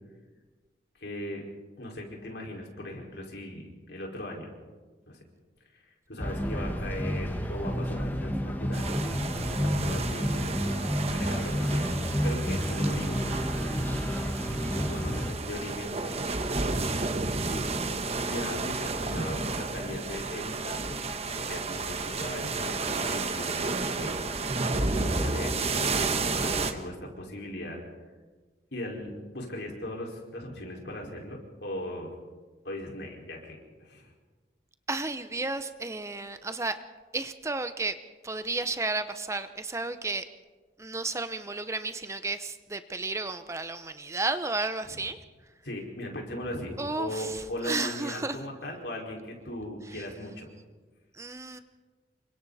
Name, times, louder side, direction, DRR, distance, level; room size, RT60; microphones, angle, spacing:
voice 1, 1.0-1.4 1.8-4.5 5.1-5.2 5.7-5.8 6.1-8.9 9.3-10.6 11.1-11.9 12.2-13.3 14.6-16.4 17.4-17.7 18.3-21.0 21.3-27.8 28.7-32.1 32.6-34.1 45.6-50.5 51.5-51.6, left 1 dB, 70° left, -1 dB, 5.1 m, -38 dB
sound 1, 6.2-15.3, equal, 10° left, 1.5 m, -30 dB
sound 2, 8.7-26.7, right 3 dB, 35° right, 1.3 m, -32 dB
voice 2, 34.9-36.8 37.1-38.0 38.2-40.2 40.8-45.2 46.8-48.4 49.9-50.0 51.2-51.6, right 3 dB, 15° right, 10 dB, 0.7 m, -33 dB
28.5 x 24.5 x 4.2 m, 1.4 s
head